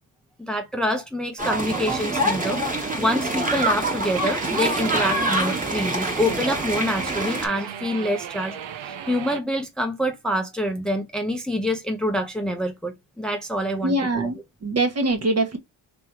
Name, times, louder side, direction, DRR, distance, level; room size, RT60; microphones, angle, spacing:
voice 1, 0.4-14.3, equal, ahead, 0.8 m, -26 dB
sound 1, 1.4-7.5, right 1 dB, 15° right, 1.6 m, -25 dB
sound 2, 4.2-9.4, right 9 dB, 75° right, 0.9 m, -36 dB
voice 2, 13.8-14.4 14.6-15.6, right 2 dB, 35° right, 1.2 m, -22 dB
3.4 x 3.0 x 4.6 m
cardioid pair, 105°, 45 cm